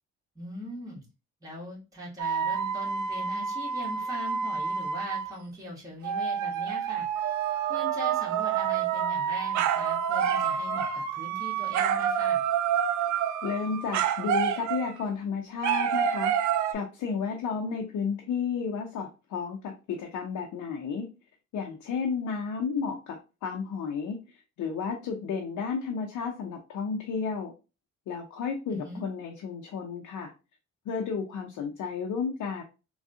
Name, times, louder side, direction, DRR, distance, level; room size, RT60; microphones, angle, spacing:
voice 1, 0.4-1.0 1.4-7.1 7.7-12.5 28.7-29.0, left 1 dB, 10° right, -6 dB, 1.6 m, -41 dB
sound 1, 2.2-5.3 6.0-15.0 15.6-16.7, right 8 dB, 70° right, 0.5 m, -28 dB
voice 2, 13.4-21.1 21.5-27.5 28.1-30.3 30.9-32.6, left 5 dB, 75° left, 1 dB, 0.7 m, -32 dB
3.4 x 2.3 x 2.7 m, 0.29 s
cardioid pair, 90°, 30 cm